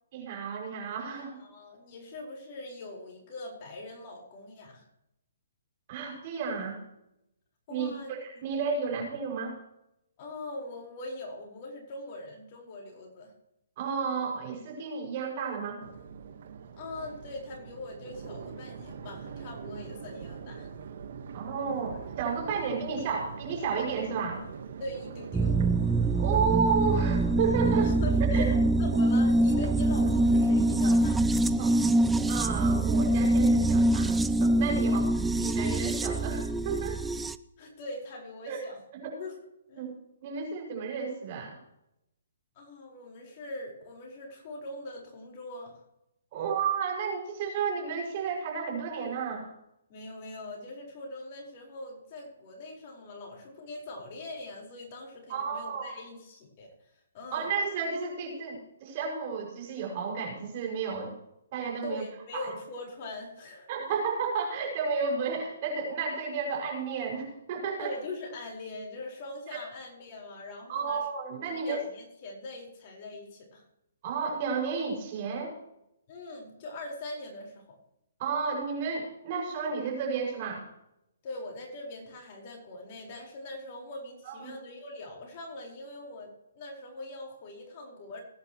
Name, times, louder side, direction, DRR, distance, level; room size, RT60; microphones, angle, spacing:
voice 1, 0.1-1.4 5.9-6.8 7.7-9.5 13.8-15.8 21.3-24.4 26.2-27.9 28.3-28.5 30.8-30.9 31.5-31.7 32.3-34.1 34.4-35.0 35.3-37.0 38.5-38.6 38.9-39.1 39.8-39.9 40.2-41.6 46.3-49.5 55.3-55.9 57.3-61.1 61.5-62.0 62.3-62.5 63.7-67.9 70.7-71.8 74.0-75.6 78.2-80.6 84.2-84.5, right 5 dB, 40° right, 0 dB, 6.0 m, -32 dB
voice 2, 1.1-4.8 7.7-8.4 10.2-13.3 16.8-20.7 24.8-25.6 27.8-31.2 34.8-35.0 37.6-38.8 39.2-39.3 39.7-39.9 42.6-45.8 49.9-56.7 57.1-57.5 61.8-63.9 67.8-71.0 71.3-73.6 76.1-77.8 81.2-88.2, left 2 dB, 35° left, -1 dB, 4.7 m, -42 dB
Crowd, 15.8-31.0, right 6 dB, 55° right, 1.5 m, -42 dB
sound 1, 25.3-37.3, right 1 dB, 5° right, 0.4 m, -24 dB
20.5 x 10.5 x 3.1 m, 0.82 s
hypercardioid pair, 155°, 0 cm